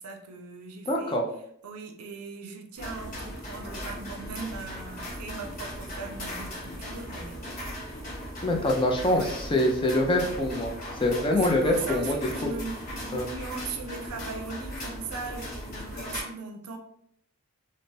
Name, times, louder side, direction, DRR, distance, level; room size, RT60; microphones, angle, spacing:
voice 1, 0.0-1.2 1.6-7.4 9.0-9.4 11.3-16.8, right 4 dB, 90° right, 4 dB, 0.5 m, -39 dB
voice 2, 0.9-1.3 8.4-10.7 11.0-12.5 13.1-13.3, left 1 dB, 20° left, 1 dB, 0.4 m, -25 dB
sound 1, 2.8-16.2, equal, 40° left, 0.8 m, -38 dB
3.2 x 2.0 x 2.7 m, 0.70 s
head